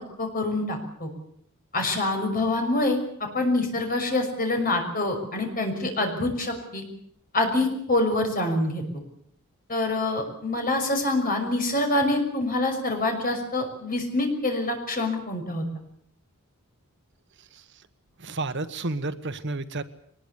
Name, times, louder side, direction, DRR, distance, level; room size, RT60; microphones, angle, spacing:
voice 1, 0.2-1.1 1.7-3.0 3.3-6.8 7.3-8.8 9.7-15.6, left 2 dB, 40° left, 4 dB, 6.0 m, -26 dB
voice 2, 18.2-19.8, right 2 dB, 55° right, 11 dB, 1.3 m, -31 dB
23.0 x 20.5 x 8.3 m, 0.68 s
head